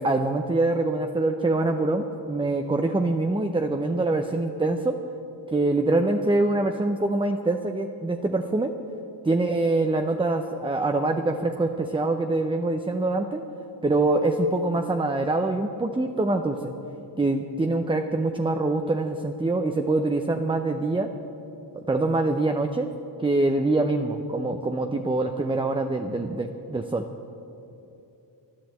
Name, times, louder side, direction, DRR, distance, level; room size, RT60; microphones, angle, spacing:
voice 1, 0.0-5.0 5.5-8.7 9.2-13.4 13.8-16.7 17.2-21.1 21.7-22.9 23.2-27.0, right 2 dB, 10° right, 5 dB, 0.5 m, -24 dB
11.0 x 10.5 x 8.0 m, 2.8 s
cardioid pair, 90°, 49 cm